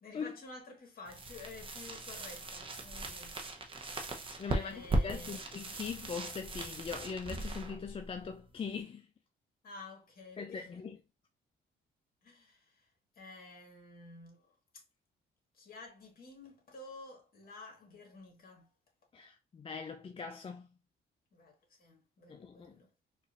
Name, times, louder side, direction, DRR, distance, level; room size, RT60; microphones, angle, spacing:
voice 1, 0.0-3.8 4.5-5.4 9.6-10.9 12.2-14.8 15.5-18.7 21.3-22.9, left 3 dB, 50° left, 1.6 m, -51 dB
sound 1, 1.0-8.8, right 2 dB, 25° right, 0.8 m, -38 dB
voice 2, 4.4-9.1 10.4-11.0 19.1-20.7 22.3-22.8, left 6 dB, 30° left, 0.4 m, -41 dB
4.3 x 2.5 x 2.5 m
cardioid pair, 90°, 20 cm